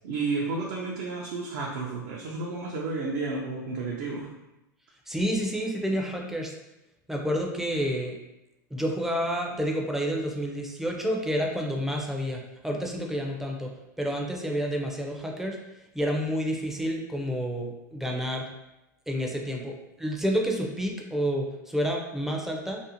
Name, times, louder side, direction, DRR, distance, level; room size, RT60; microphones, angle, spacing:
voice 1, 0.0-4.3, right 3 dB, 65° right, -3 dB, 0.5 m, -31 dB
voice 2, 5.1-6.5 7.1-8.2 8.7-13.7 14.0-15.6 15.9-18.4 19.1-22.8, equal, 5° right, 0 dB, 0.4 m, -29 dB
2.5 x 2.1 x 2.8 m, 0.93 s
hypercardioid pair, 115°, 10 cm